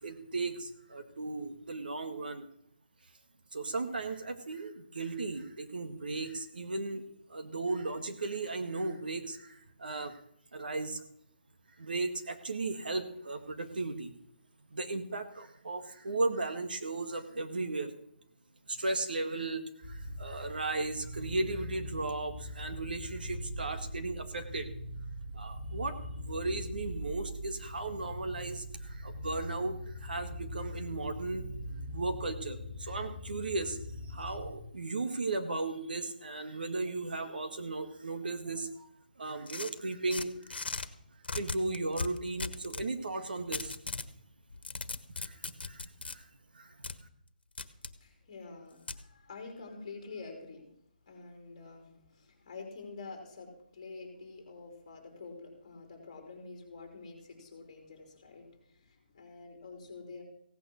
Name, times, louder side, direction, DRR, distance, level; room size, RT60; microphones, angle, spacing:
voice 1, 0.0-2.5 3.5-7.1 7.3-10.1 10.5-11.0 11.8-14.1 14.7-17.9 18.7-24.7 25.3-31.5 31.9-33.8 34.1-38.9 39.2-40.3 41.3-43.8 45.2-45.4 45.6-45.8 46.1-46.2 46.6-46.7, right 3 dB, 60° right, 8 dB, 1.8 m, -36 dB
sound 1, 19.8-34.5, equal, 5° left, 4.1 m, -42 dB
sound 2, 39.5-40.9 41.2-42.9 43.5-44.1 44.5-46.2 46.8-47.0 47.6-47.9 48.9-49.0, left 4 dB, 80° left, 1.4 m, -38 dB
voice 2, 48.0-50.6 51.0-60.2, left 4 dB, 25° left, 3 dB, 3.7 m, -47 dB
16.5 x 9.5 x 6.5 m, 0.70 s
hypercardioid pair, 175°, 5 cm